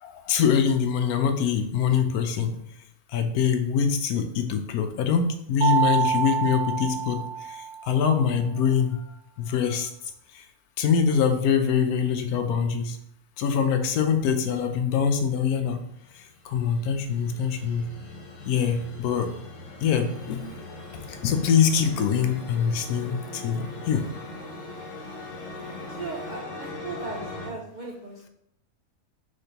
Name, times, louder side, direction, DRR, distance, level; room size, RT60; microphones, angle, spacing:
voice 1, 0.0-2.6 3.1-9.0 9.4-9.9 10.3-10.4 10.8-13.0 13.4-15.8 16.1-17.9 18.4-19.3 19.8-20.5 21.1-24.1, left 7 dB, 85° left, 7 dB, 1.1 m, -24 dB
Mallet percussion, 5.6-8.1, right 7 dB, 85° right, 1.1 m, -26 dB
sound 1, 15.9-27.5, left 2 dB, 60° left, 1.2 m, -40 dB
voice 2, 25.9-28.3, right 3 dB, 65° right, -2 dB, 0.4 m, -37 dB
5.1 x 3.5 x 2.8 m, 0.74 s
omnidirectional pair, 1.5 m